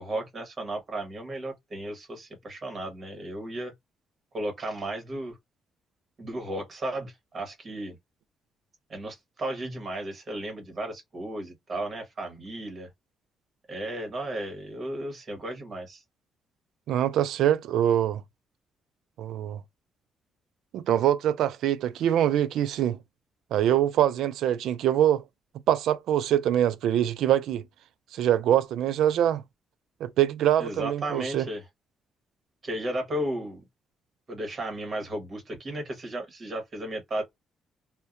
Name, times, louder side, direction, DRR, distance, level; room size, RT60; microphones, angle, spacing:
voice 1, 0.0-3.7 4.3-5.4 6.2-8.0 8.9-12.9 13.7-16.0 30.6-31.6 32.6-33.6 34.3-37.2, right 1 dB, 40° right, 1.2 m, -34 dB
voice 2, 16.9-18.2 19.2-19.6 20.7-23.0 23.5-25.2 25.7-27.6 28.1-29.4 30.0-31.4, right 11 dB, 80° right, 0.3 m, -24 dB
2.6 x 2.1 x 2.5 m
cardioid pair, 90°, 0 cm